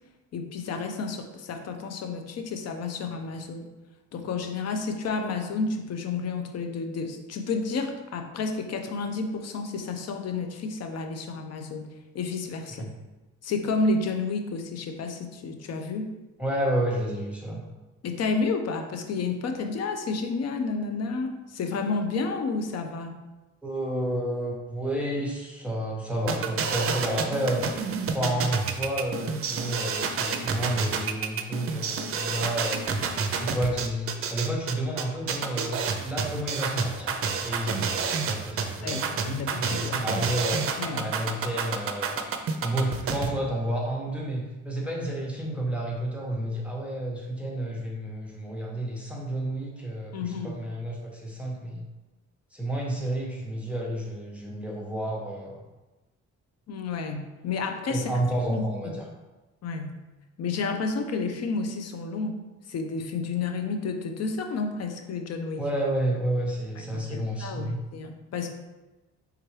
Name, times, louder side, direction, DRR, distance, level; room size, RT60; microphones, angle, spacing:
voice 1, 0.3-3.7 4.1-11.9 12.1-12.9 13.4-16.1 18.0-23.2 38.8-40.0 40.8-41.1 50.1-50.6 56.7-58.1 58.5-59.0 59.6-59.9 60.4-62.4 62.7-65.6 66.8-68.5, left 4 dB, 55° left, 5 dB, 0.7 m, -31 dB
voice 2, 16.4-17.6 23.6-27.6 28.1-33.1 33.4-40.6 40.9-42.2 42.6-51.8 52.5-55.5 57.9-59.0 65.6-67.8, right 1 dB, 5° right, -3 dB, 0.9 m, -30 dB
sound 1, 26.3-43.3, right 5 dB, 50° right, 0.5 m, -29 dB
4.6 x 3.5 x 3.2 m, 1.1 s
cardioid pair, 90°, 30 cm